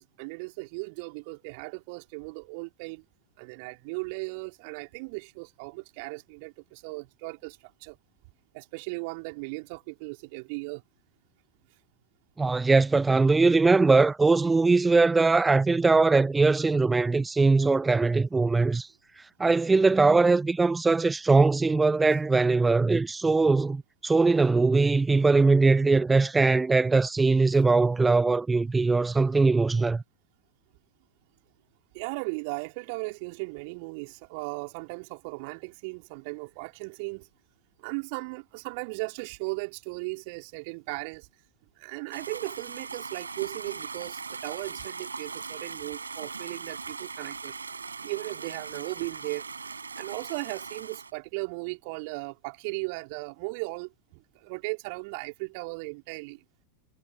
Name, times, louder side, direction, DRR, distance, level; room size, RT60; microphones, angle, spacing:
voice 1, 0.0-3.0 3.4-8.0 8.5-10.8 31.9-37.3 37.8-41.3 41.8-47.6 48.0-49.5 50.0-56.4, right 31 dB, 45° right, 3.5 m, -37 dB
voice 2, 12.4-18.9 19.4-30.0, right 3 dB, 10° right, 0.6 m, -21 dB
sound 1, 42.1-51.1, right 5 dB, 75° right, 5.9 m, -39 dB
figure-of-eight pair, 90°, 0 cm